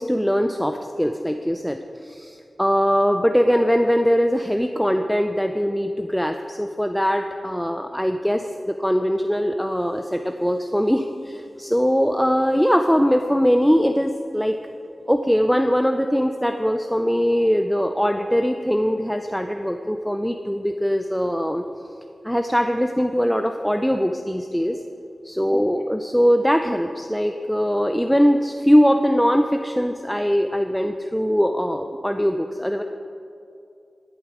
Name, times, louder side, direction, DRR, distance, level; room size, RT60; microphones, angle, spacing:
voice 1, 0.0-14.6 15.1-21.6 22.2-24.8 25.2-32.8, equal, ahead, 6 dB, 0.5 m, -21 dB
12.0 x 10.5 x 4.9 m, 2.6 s
wide cardioid pair, 70°, 0 cm